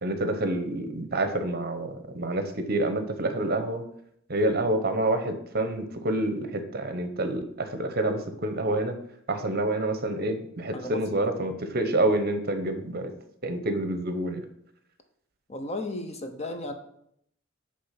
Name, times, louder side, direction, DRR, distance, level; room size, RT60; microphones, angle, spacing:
voice 1, 0.0-3.8 4.3-9.0 9.3-13.1 13.4-14.4, right 1 dB, 50° right, 7 dB, 0.8 m, -28 dB
voice 2, 10.7-11.2 15.5-16.7, left 1 dB, 30° left, 6 dB, 0.8 m, -34 dB
8.5 x 3.4 x 5.8 m, 0.71 s
head